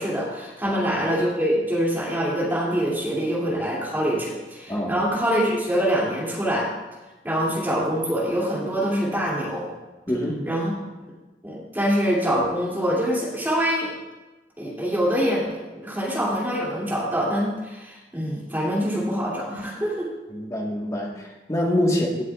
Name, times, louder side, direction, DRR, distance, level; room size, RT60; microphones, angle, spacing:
voice 1, 0.0-6.7 7.2-9.7 10.5-10.7 11.4-13.9 14.6-20.1 21.9-22.0, equal, 10° right, -6 dB, 2.6 m, -25 dB
voice 2, 10.1-10.4 20.3-22.3, left 1 dB, 20° left, -1 dB, 1.4 m, -25 dB
18.0 x 7.1 x 2.4 m, 1.1 s
head